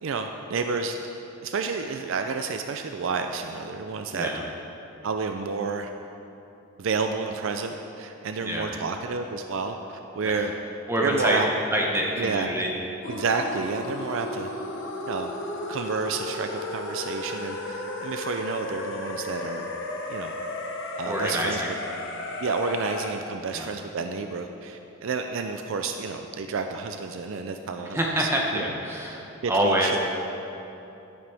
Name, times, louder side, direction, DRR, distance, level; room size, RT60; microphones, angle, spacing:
voice 1, 0.0-1.0 1.4-4.3 5.0-5.9 6.8-10.5 11.0-11.5 12.2-12.5 13.1-14.5 15.1-15.3 15.7-19.7 20.1-20.3 21.0-21.7 22.4-28.6 29.4-30.0, right 4 dB, 65° right, 6 dB, 0.4 m, -30 dB
voice 2, 10.9-11.4 11.7-12.7 21.0-21.7 23.5-23.7 27.9-30.0, equal, 10° right, -1 dB, 0.9 m, -26 dB
sound 1, 13.0-23.1, left 1 dB, 60° left, 0.9 m, -34 dB
11.5 x 9.0 x 3.4 m, 2.9 s
head